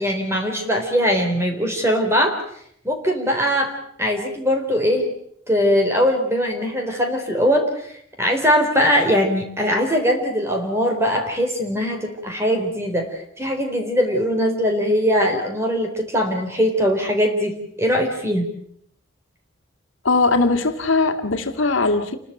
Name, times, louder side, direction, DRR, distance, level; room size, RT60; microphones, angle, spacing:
voice 1, 0.0-2.4 2.8-3.7 4.0-5.1 5.5-7.7 8.2-17.5 17.8-18.5, equal, 15° right, 3 dB, 3.9 m, -21 dB
voice 2, 20.0-22.2, left 3 dB, 75° left, 5 dB, 2.1 m, -19 dB
29.0 x 13.0 x 9.0 m, 0.70 s
head